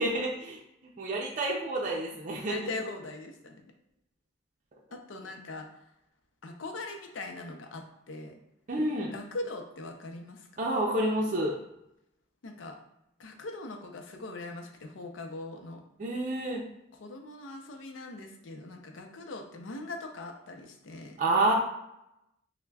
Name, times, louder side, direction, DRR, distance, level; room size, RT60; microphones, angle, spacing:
voice 1, 0.0-2.7 8.7-9.1 10.6-11.6 16.0-16.6 21.2-21.5, right 1 dB, 40° right, -1 dB, 0.5 m, -29 dB
voice 2, 2.5-3.6 4.9-5.7 6.4-8.4 9.1-10.5 12.4-12.8 13.2-15.8 17.0-21.2, left 2 dB, 90° left, 4 dB, 0.6 m, -40 dB
5.7 x 2.1 x 2.3 m, 0.85 s
head